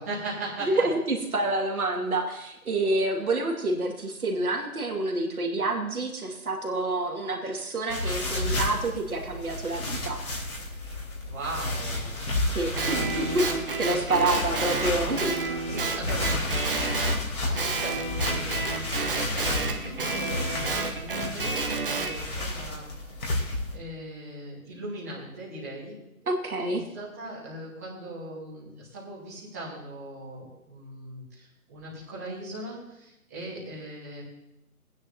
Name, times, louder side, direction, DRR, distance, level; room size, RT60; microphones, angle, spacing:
voice 1, 0.0-0.8 11.2-12.2 12.6-13.4 14.4-14.5 15.1-17.1 17.4-22.9 23.4-25.9 26.7-34.2, right 1 dB, 10° right, -9 dB, 1.5 m, -39 dB
voice 2, 0.7-10.2 12.5-13.5 13.8-15.4 16.6-16.9 26.2-26.8, right 2 dB, 75° right, 1 dB, 2.4 m, -28 dB
sound 1, 7.9-23.7, left 2 dB, 80° left, 3.8 m, -32 dB
Guitar, 12.8-17.2 17.6-22.1, right 3 dB, 40° right, 1.2 m, -30 dB
18.0 x 9.5 x 2.9 m, 0.87 s
hypercardioid pair, 175°, 43 cm